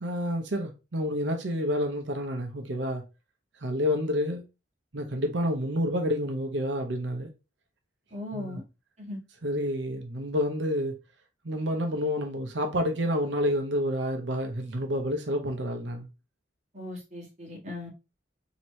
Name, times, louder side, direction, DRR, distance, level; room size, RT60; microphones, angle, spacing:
voice 1, 0.0-3.0 3.6-4.4 4.9-7.3 8.3-8.6 9.4-10.9 11.4-16.1, equal, 85° right, 0.8 m, -29 dB
voice 2, 8.1-8.6 9.0-9.2 16.7-17.9, left 1 dB, 40° right, 1.7 m, -38 dB
4.4 x 2.9 x 3.1 m
head